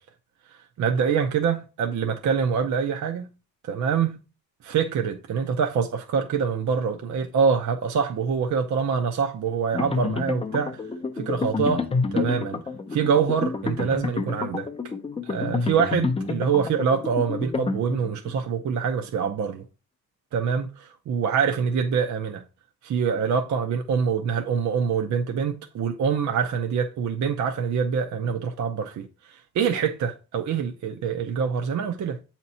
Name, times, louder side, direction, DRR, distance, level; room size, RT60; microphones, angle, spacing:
voice 1, 0.8-3.3 3.7-4.2 4.6-10.8 11.2-12.6 12.9-14.7 15.3-19.6 20.3-22.4 22.8-32.2, right 6 dB, 50° right, 0.6 m, -25 dB
sound 1, 9.7-18.3, left 4 dB, 15° left, 0.5 m, -29 dB
7.7 x 2.9 x 4.2 m
cardioid pair, 125°, 37 cm